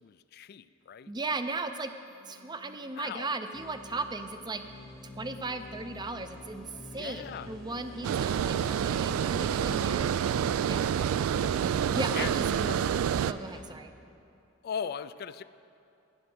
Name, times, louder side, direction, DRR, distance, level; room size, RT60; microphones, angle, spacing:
voice 1, 0.0-1.1 3.0-3.4 7.0-7.5 8.6-8.8 12.1-12.3 12.6-12.8 14.6-15.4, left 7 dB, 50° left, 14 dB, 0.3 m, -39 dB
voice 2, 1.1-1.9 2.3-4.6 5.0-10.1 10.7-10.9 11.9-13.0 13.3-13.9, right 3 dB, 20° right, 8 dB, 0.5 m, -36 dB
sound 1, 2.1-13.4, right 1 dB, 65° right, 1.0 m, -57 dB
sound 2, 3.5-13.6, left 2 dB, ahead, 0.9 m, -47 dB
Water, 8.0-13.3, right 8 dB, 85° right, 0.3 m, -28 dB
11.5 x 9.8 x 6.1 m, 2.7 s
head